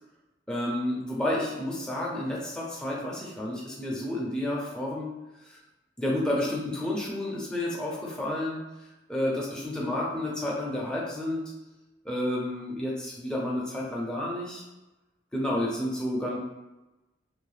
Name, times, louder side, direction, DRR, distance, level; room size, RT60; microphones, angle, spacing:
voice 1, 0.5-5.1 5.5-5.6 6.0-8.6 9.1-11.4 12.0-14.6 15.3-16.4, left 1 dB, 5° left, -5 dB, 0.6 m, -30 dB
2.7 x 2.1 x 3.2 m, 1.0 s
head